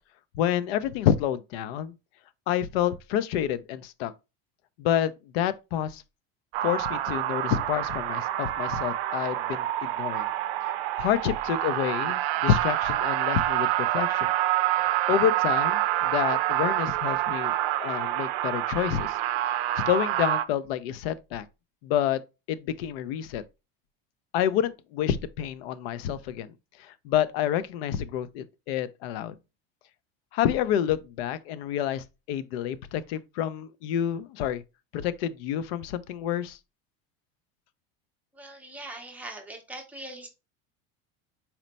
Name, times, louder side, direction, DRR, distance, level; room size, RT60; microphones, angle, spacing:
voice 1, 0.4-1.9 2.5-4.1 4.8-6.0 6.6-10.3 11.0-14.3 14.7-17.5 17.8-19.2 19.9-21.4 21.8-22.2 22.5-23.4 24.3-26.5 26.8-29.3 30.3-34.6 34.9-36.6, left 10 dB, 85° left, 0.5 m, -28 dB
sound 1, 6.5-20.4, right 14 dB, 90° right, 0.5 m, -27 dB
voice 2, 38.3-40.3, right 1 dB, 5° right, 0.5 m, -41 dB
4.3 x 2.1 x 3.9 m
cardioid pair, 160°, 30 cm